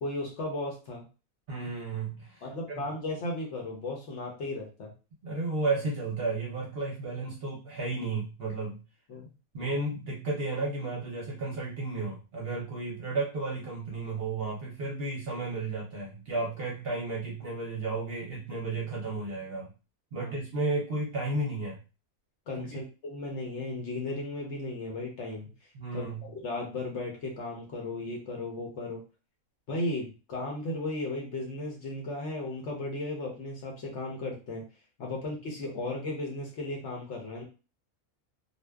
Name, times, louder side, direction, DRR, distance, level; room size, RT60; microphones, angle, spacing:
voice 1, 0.0-1.0 2.4-4.9 9.1-9.3 20.1-20.3 22.5-25.5 25.9-29.0 29.7-34.6 35.0-37.4, left 2 dB, 60° left, -1 dB, 0.9 m, -35 dB
voice 2, 1.5-2.4 2.7-2.8 5.2-8.8 9.5-19.7 20.1-21.8 22.6-22.7 25.7-26.2, right 3 dB, 55° right, -3 dB, 0.8 m, -33 dB
2.6 x 2.2 x 2.2 m, 0.32 s
omnidirectional pair, 1.5 m